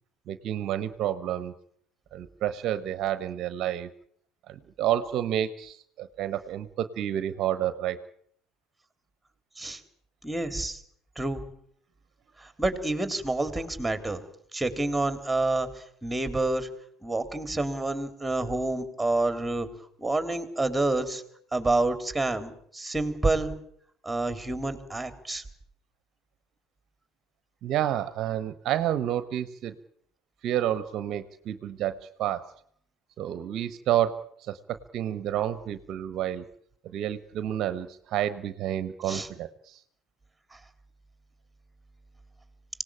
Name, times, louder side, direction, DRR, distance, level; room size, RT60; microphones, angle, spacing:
voice 1, 0.3-1.5 2.1-3.9 4.5-8.1 27.6-29.7 30.4-32.5 33.2-36.4 36.9-39.8, right 11 dB, 55° right, 13 dB, 1.1 m, -30 dB
voice 2, 10.2-10.8 11.2-11.4 12.4-14.2 14.5-16.7 17.0-19.7 20.0-21.2 21.5-23.5 24.0-25.4 39.0-39.3 40.5-40.6, right 2 dB, 5° right, 9 dB, 3.6 m, -28 dB
26.0 x 18.0 x 8.8 m, 0.67 s
figure-of-eight pair, 60°, 0 cm